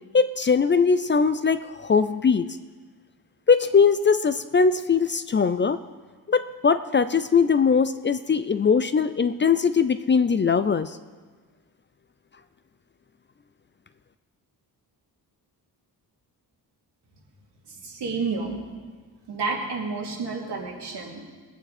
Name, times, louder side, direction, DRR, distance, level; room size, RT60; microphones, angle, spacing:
voice 1, 0.1-2.5 3.5-5.8 6.3-10.9, left 5 dB, 30° left, 12 dB, 0.4 m, -21 dB
voice 2, 17.7-18.6 19.3-21.2, right 4 dB, 90° right, -2 dB, 2.8 m, -30 dB
21.0 x 9.0 x 4.2 m, 1.4 s
wide cardioid pair, 145°, 40 cm